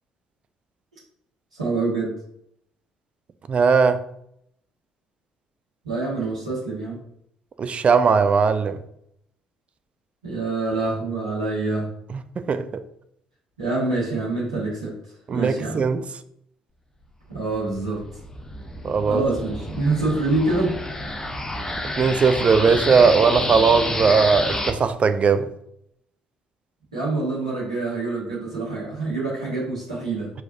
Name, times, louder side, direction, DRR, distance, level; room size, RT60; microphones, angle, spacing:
voice 1, 1.5-2.1 5.8-7.0 10.2-11.9 13.6-14.9 15.3-15.9 17.3-18.0 19.1-20.7 26.9-30.3, right 3 dB, 80° right, 1.7 m, -26 dB
voice 2, 3.5-4.0 7.6-8.8 12.4-12.6 15.3-16.0 18.8-19.2 22.0-25.5, right 5 dB, 35° right, 0.4 m, -19 dB
sound 1, 17.4-24.7, left 1 dB, 15° left, 0.8 m, -29 dB
4.7 x 4.1 x 2.7 m
figure-of-eight pair, 50°, 4 cm